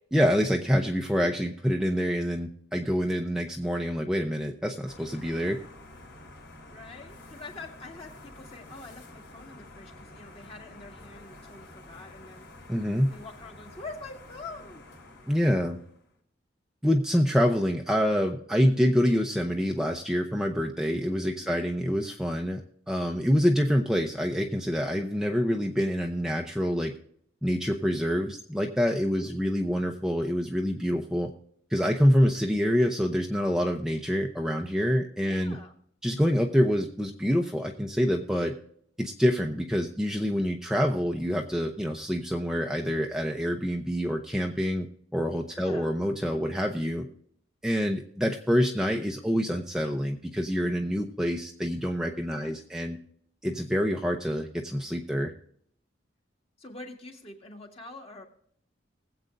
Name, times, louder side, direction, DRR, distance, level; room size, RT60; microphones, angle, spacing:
voice 1, 0.1-5.6 12.7-13.1 15.3-15.8 16.8-26.9 27.4-31.3 31.7-35.6 36.0-38.5 39.0-44.9 45.1-47.1 47.6-53.0 53.4-55.3, equal, 5° right, 2 dB, 0.6 m, -26 dB
sound 1, 4.8-16.1, left 2 dB, 70° left, 3.5 m, -49 dB
voice 2, 6.7-12.5 13.1-14.8 15.5-15.7 21.1-21.5 29.2-29.5 35.2-35.7 45.6-45.9 52.3-52.5 56.6-58.3, left 3 dB, 30° left, 2 dB, 1.8 m, -45 dB
20.5 x 7.9 x 2.5 m, 0.65 s
head